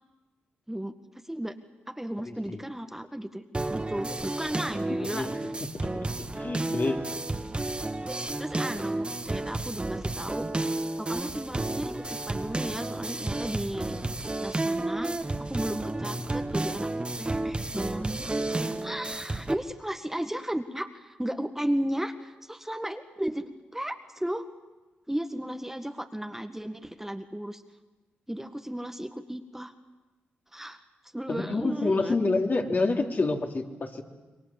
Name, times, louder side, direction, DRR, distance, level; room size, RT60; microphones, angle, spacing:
voice 1, 1.2-1.6 1.9-3.4 3.7-5.4 8.4-10.5 11.0-14.0 14.4-16.9 17.2-24.5 25.1-27.6 28.3-29.7 30.5-30.8 31.1-32.2, right 1 dB, 10° right, 7 dB, 1.7 m, -34 dB
sound 1, 3.5-19.5, right 2 dB, 25° right, 1.9 m, -32 dB
voice 2, 4.9-5.3 6.3-7.0 31.3-34.0, left 3 dB, 45° left, 2 dB, 3.2 m, -27 dB
27.5 x 22.5 x 7.3 m, 1.2 s
supercardioid pair, 45°, 4 cm